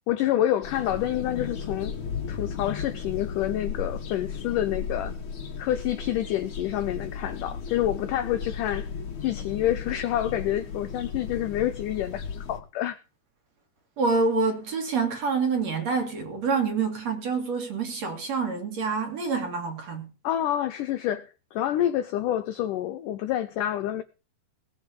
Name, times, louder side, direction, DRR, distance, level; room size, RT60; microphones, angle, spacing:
voice 1, 0.1-2.0 2.3-5.1 5.6-8.9 9.2-13.0 20.2-24.0, left 12 dB, 85° left, 1.8 m, -28 dB
sound 1, 0.6-12.6, left 6 dB, 50° left, 3.5 m, -35 dB
voice 2, 14.0-20.1, right 4 dB, 45° right, 3.3 m, -27 dB
19.0 x 6.7 x 6.9 m
omnidirectional pair, 4.8 m